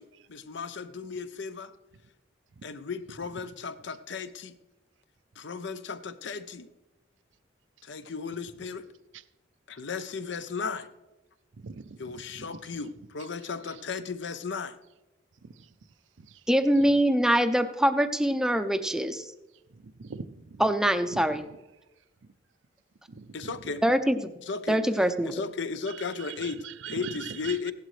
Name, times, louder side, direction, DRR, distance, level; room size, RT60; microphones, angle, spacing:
voice 1, 0.3-1.7 2.6-4.5 5.4-6.7 7.8-8.8 9.7-10.9 12.0-14.7 23.3-23.8 24.5-24.8 25.2-26.6 26.9-27.7, left 5 dB, 65° left, 12 dB, 0.7 m, -35 dB
voice 2, 11.5-12.8 13.2-13.8 15.4-15.7 16.2-16.4 16.9-17.0 19.7-20.6 21.1-21.4 23.1-23.8 25.9-27.7, right 6 dB, 75° right, 13 dB, 0.5 m, -43 dB
voice 3, 16.5-19.3 20.6-21.4 23.8-24.2 24.7-25.4, right 1 dB, 5° right, 8 dB, 0.6 m, -24 dB
16.0 x 11.5 x 3.3 m, 1.0 s
head